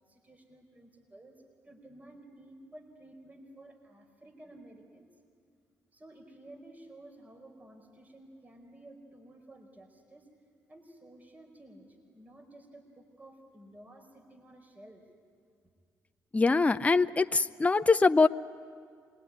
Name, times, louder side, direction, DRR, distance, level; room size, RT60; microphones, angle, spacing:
voice 1, 0.0-5.1 5.9-10.3 10.7-15.0, right 1 dB, 25° right, 4 dB, 4.7 m, -53 dB
voice 2, 16.3-18.3, left 4 dB, 20° left, 10 dB, 0.7 m, -23 dB
26.5 x 21.5 x 9.7 m, 2.2 s
supercardioid pair, 60°, 7 cm